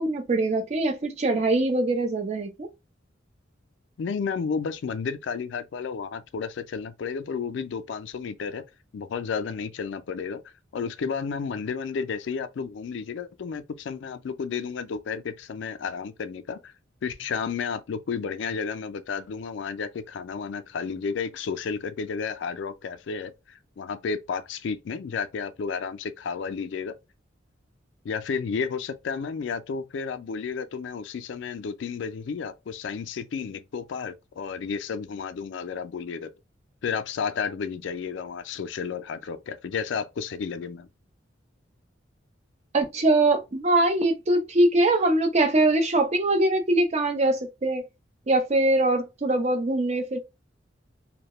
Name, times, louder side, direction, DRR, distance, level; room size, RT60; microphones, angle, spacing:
voice 1, 0.0-2.7 42.7-47.8 48.3-50.2, right 2 dB, 35° right, 0.4 m, -22 dB
voice 2, 4.0-8.6 8.9-10.4 10.7-16.7 17.0-27.0 28.0-36.3 36.8-40.9, left 5 dB, 70° left, 0.4 m, -32 dB
2.2 x 2.0 x 2.8 m
head